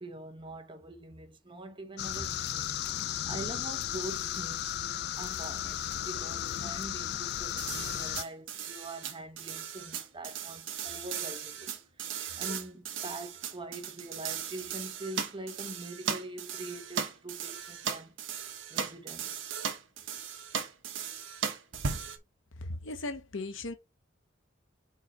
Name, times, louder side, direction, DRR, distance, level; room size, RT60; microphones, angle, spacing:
voice 1, 0.0-4.8 5.2-11.7 12.0-18.2 18.7-19.6, right 2 dB, 25° right, 1.2 m, -44 dB
sound 1, 2.0-8.2, left 12 dB, 55° left, 0.3 m, -35 dB
sound 2, 7.6-22.2, right 7 dB, 75° right, 1.2 m, -37 dB
voice 2, 22.6-23.7, left 2 dB, 80° left, 1.0 m, -37 dB
4.7 x 4.5 x 5.3 m
head